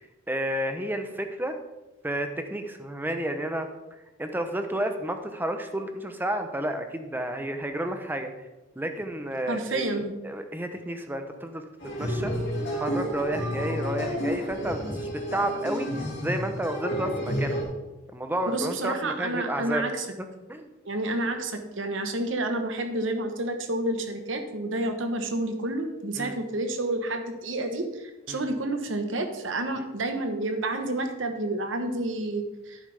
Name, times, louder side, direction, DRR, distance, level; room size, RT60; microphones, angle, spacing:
voice 1, 0.3-1.6 2.0-3.7 4.2-8.5 8.8-9.9 10.2-11.6 12.0-12.3 12.7-15.9 16.2-17.6 18.1-19.9 20.2-20.7 26.2-26.4 28.3-28.4, right 1 dB, 10° right, 7 dB, 0.8 m, -31 dB
voice 2, 9.5-10.1 18.5-20.1 20.8-32.8, right 2 dB, 75° right, 6 dB, 1.2 m, -29 dB
sound 1, 11.8-17.6, equal, 60° left, 2.8 m, -30 dB
11.0 x 9.2 x 3.4 m, 1.0 s
head